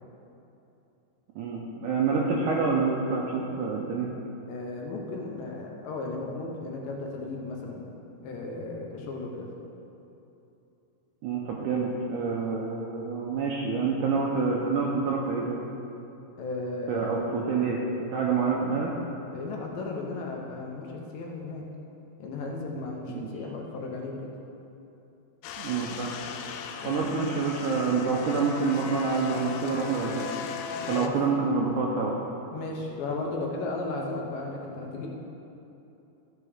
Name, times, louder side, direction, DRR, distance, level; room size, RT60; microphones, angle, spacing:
voice 1, 1.4-4.1 11.2-15.6 16.9-17.8 18.1-18.9 23.1-23.3 25.6-26.1 26.8-30.3 30.9-32.1, right 4 dB, 75° right, -3 dB, 1.8 m, -27 dB
voice 2, 4.5-7.9 8.2-9.5 16.4-17.2 19.3-21.6 22.2-24.3 26.8-27.1 30.8-31.1 32.5-35.1, left 3 dB, 70° left, -1 dB, 2.4 m, -35 dB
sound 1, 25.4-31.1, left 7 dB, 90° left, 2.5 m, -38 dB
14.0 x 5.2 x 5.0 m, 2.9 s
omnidirectional pair, 4.4 m